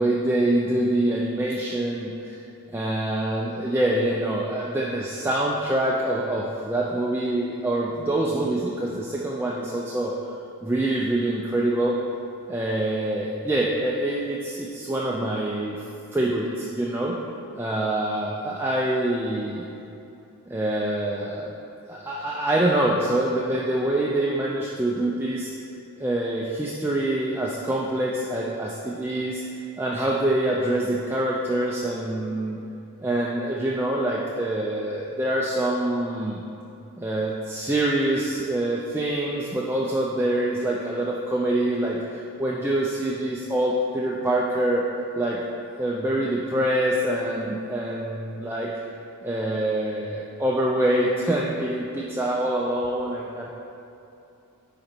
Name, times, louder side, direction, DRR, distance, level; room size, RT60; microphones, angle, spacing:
voice 1, 0.0-2.4 2.7-10.1 10.6-12.0 12.5-15.9 16.1-17.2 17.5-19.7 20.5-21.5 21.9-25.5 26.0-29.4 29.8-32.6 33.0-36.4 37.0-44.8 45.1-45.4 45.8-48.7 49.2-53.5, right 1 dB, 10° right, -4 dB, 0.4 m, -25 dB
10.5 x 4.0 x 4.4 m, 2.8 s
head